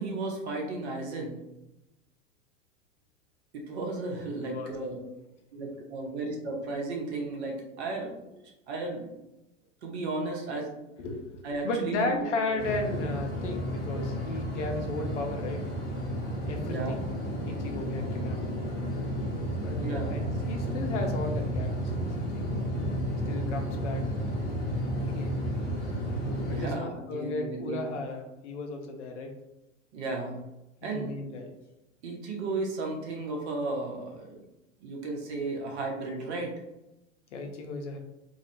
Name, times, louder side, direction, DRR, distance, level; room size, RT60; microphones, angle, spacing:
voice 1, 0.0-1.4 3.5-5.0 5.5-9.1 9.8-10.7 11.4-12.6 16.7-17.0 19.8-20.2 26.5-27.9 29.9-30.4 30.8-31.1 32.0-34.4 34.8-36.5, right 3 dB, 55° right, 1 dB, 0.8 m, -34 dB
voice 2, 11.0-15.6 16.5-17.0 17.4-18.4 19.5-21.9 22.3-22.6 23.3-24.0 25.1-25.4 26.5-29.3 30.8-31.5 37.3-38.0, left 2 dB, 65° left, 3 dB, 0.6 m, -35 dB
sound 1, 12.6-26.7, equal, 25° left, 0.7 m, -32 dB
2.3 x 2.0 x 2.9 m, 0.94 s
figure-of-eight pair, 85°, 39 cm